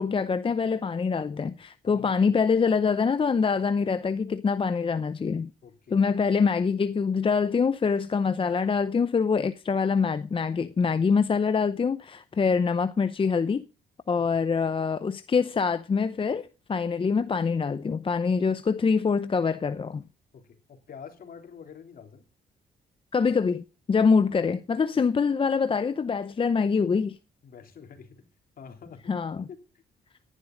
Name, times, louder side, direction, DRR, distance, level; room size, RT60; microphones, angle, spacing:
voice 1, 0.0-5.5 5.9-13.6 14.1-20.0 23.1-27.2 29.1-29.5, left 5 dB, 30° left, 0.7 m, -25 dB
voice 2, 1.8-2.3 5.6-6.1 20.3-22.2 27.4-28.2 28.6-29.2 29.5-29.6, left 6 dB, 60° left, 3.3 m, -47 dB
16.0 x 11.0 x 3.9 m
cardioid pair, 80°, 17 cm